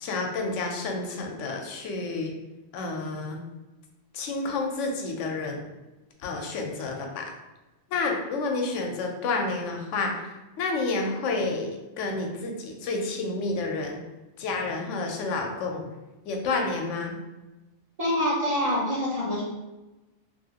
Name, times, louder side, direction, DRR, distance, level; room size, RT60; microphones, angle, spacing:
voice 1, 0.0-2.3 2.7-3.4 4.1-5.6 6.2-7.3 7.9-11.7 12.0-14.0 14.4-15.8 16.3-17.1, left 3 dB, 90° left, 2 dB, 0.9 m, -30 dB
voice 2, 18.0-19.4, left 1 dB, 35° right, -7 dB, 1.0 m, -25 dB
2.8 x 2.7 x 2.8 m, 1.1 s
omnidirectional pair, 1.2 m